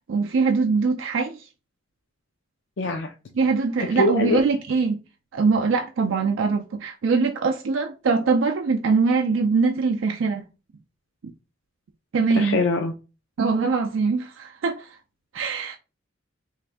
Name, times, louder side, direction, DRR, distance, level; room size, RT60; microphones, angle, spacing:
voice 1, 0.1-1.5 3.4-5.0 5.3-10.5 12.1-12.6 13.4-14.9 15.3-15.8, right 4 dB, 90° right, 0.4 m, -22 dB
voice 2, 2.8-3.1 3.8-4.4 12.4-12.9, left 2 dB, 65° left, 0.5 m, -23 dB
3.1 x 2.5 x 3.4 m
head